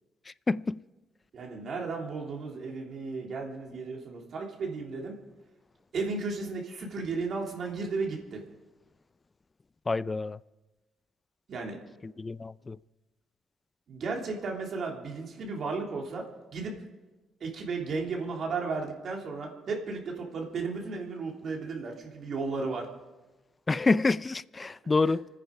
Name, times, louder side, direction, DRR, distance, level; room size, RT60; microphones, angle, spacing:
voice 1, 0.5-0.8 9.9-10.4 12.0-12.8 23.7-25.3, left 3 dB, 25° left, 0.4 m, -27 dB
voice 2, 1.3-5.2 5.9-8.4 11.5-11.8 13.9-16.2 16.5-16.7 17.4-22.9 25.1-25.2, right 4 dB, 55° right, 3.4 m, -34 dB
29.5 x 9.9 x 4.9 m
cardioid pair, 90°, 0 cm